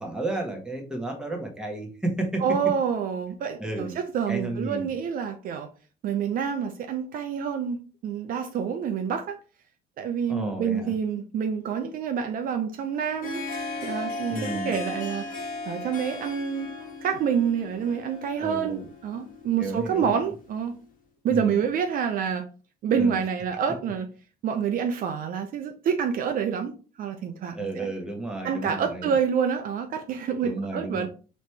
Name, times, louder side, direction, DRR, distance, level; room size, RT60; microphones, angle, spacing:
voice 1, 0.0-2.4 3.6-3.9 4.3-4.9 10.3-10.9 14.3-14.7 18.4-18.8 19.6-20.0 21.3-21.6 23.0-23.2 27.5-29.1 30.4-31.1, right 2 dB, 5° right, 1.2 m, -32 dB
voice 2, 2.4-5.7 6.0-9.4 10.0-13.4 13.8-15.3 15.7-16.7 17.0-20.7 21.2-22.5 22.8-24.1 24.4-26.7 27.0-27.9 28.4-31.1, right 7 dB, 55° right, 0.6 m, -27 dB
Harp, 12.9-20.7, left 3 dB, 50° left, 1.3 m, -37 dB
4.2 x 3.0 x 3.3 m
cardioid pair, 110°, 17 cm